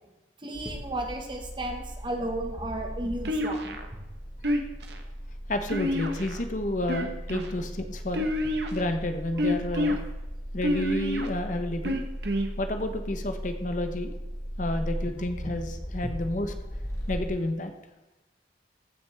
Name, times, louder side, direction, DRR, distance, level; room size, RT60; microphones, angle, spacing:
voice 1, 0.4-3.8, right 1 dB, 25° right, 3 dB, 1.3 m, -34 dB
sound 1, 0.5-17.3, equal, 15° left, 1.3 m, -37 dB
sound 2, 3.2-3.9 4.4-5.0 5.7-6.4 6.8-7.5 8.1-8.8 9.4-10.0 10.6-11.3 11.8-12.5, left 1 dB, 65° right, 1.1 m, -28 dB
voice 2, 5.5-8.2 8.7-10.0 10.5-12.0 12.6-14.1 14.6-16.5 17.1-17.7, left 1 dB, 45° left, 7 dB, 0.8 m, -30 dB
15.0 x 6.5 x 3.4 m, 1.1 s
head